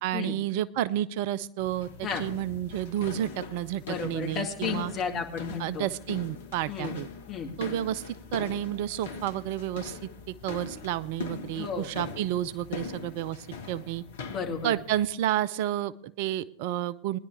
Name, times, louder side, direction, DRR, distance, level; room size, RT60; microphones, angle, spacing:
voice 1, 0.0-1.9 2.2-4.9 5.6-7.1 7.6-14.0 14.6-17.2, right 12 dB, 50° right, 16 dB, 0.4 m, -31 dB
sound 1, 1.6-15.1, left 4 dB, 60° left, 1.4 m, -41 dB
voice 2, 3.8-5.9 6.7-6.9 7.3-7.5 11.5-11.9 14.3-14.7, left 6 dB, 30° left, 2 dB, 2.1 m, -33 dB
19.5 x 10.5 x 3.4 m, 0.62 s
figure-of-eight pair, 90°, 0 cm